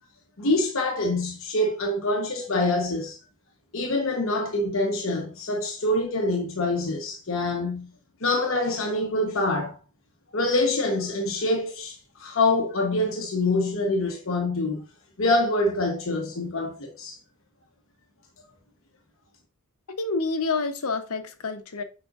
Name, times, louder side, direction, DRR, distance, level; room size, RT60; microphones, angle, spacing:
voice 1, 0.4-3.2 3.7-7.9 8.2-9.8 10.3-14.8 15.2-17.2, left 2 dB, 60° left, 1.1 m, -25 dB
voice 2, 20.0-21.8, left 4 dB, 85° left, 0.9 m, -28 dB
7.5 x 5.0 x 2.5 m
head